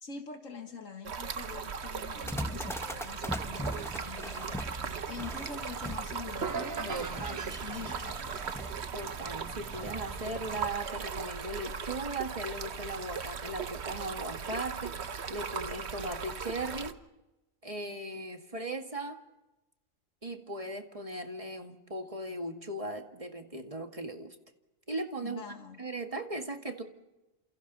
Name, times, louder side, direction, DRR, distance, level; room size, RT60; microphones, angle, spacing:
voice 1, 0.0-8.5 25.2-25.8, left 5 dB, 80° left, 5 dB, 2.0 m, -45 dB
Stream, 1.1-16.9, right 6 dB, 55° right, 1.3 m, -38 dB
sound 1, 2.2-10.7, equal, 5° left, 0.7 m, -41 dB
sound 2, 6.4-8.5, right 5 dB, 90° right, 2.2 m, -39 dB
voice 2, 6.9-7.4 8.9-17.0 17.6-19.2 20.2-24.4 24.9-25.4 25.8-26.8, right 2 dB, 25° right, 4 dB, 2.0 m, -38 dB
29.0 x 28.0 x 4.1 m, 1.0 s
omnidirectional pair, 1.3 m